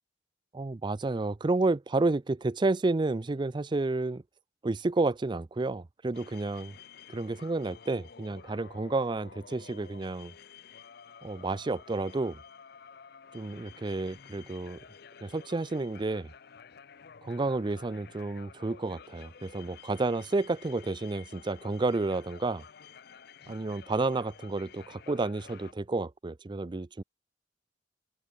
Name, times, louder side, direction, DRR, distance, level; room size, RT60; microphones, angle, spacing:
voice 1, 0.5-4.2 4.6-6.8 7.1-10.3 11.2-12.4 13.3-14.8 15.2-16.3 17.2-22.6 23.5-27.0, right 3 dB, 25° right, 0.4 m, -30 dB
sound 1, 6.1-25.7, left 7 dB, 55° left, 0.6 m, -52 dB
open air
head